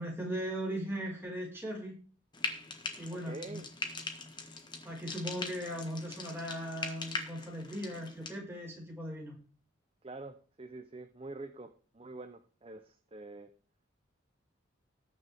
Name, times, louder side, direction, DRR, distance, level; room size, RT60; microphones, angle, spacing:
voice 1, 0.0-2.0 3.0-3.6 4.8-9.3, equal, 10° right, -3 dB, 5.2 m, -38 dB
Frying (food), 2.3-8.4, left 3 dB, 25° left, 1.5 m, -41 dB
voice 2, 3.2-3.7 10.0-13.5, right 2 dB, 30° right, 8 dB, 0.8 m, -46 dB
19.5 x 6.6 x 3.6 m, 0.41 s
head